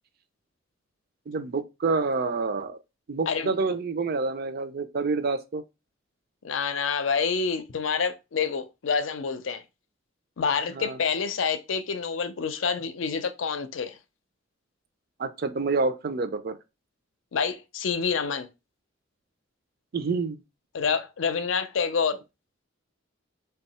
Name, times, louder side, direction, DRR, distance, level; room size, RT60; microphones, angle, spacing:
voice 1, 1.3-2.8 3.1-5.6 10.7-11.0 15.2-16.6 19.9-20.4, right 4 dB, 50° right, 0.5 m, -28 dB
voice 2, 6.4-9.6 10.4-14.0 17.3-18.5 20.7-22.2, left 6 dB, 90° left, 0.5 m, -27 dB
3.5 x 2.3 x 4.1 m
head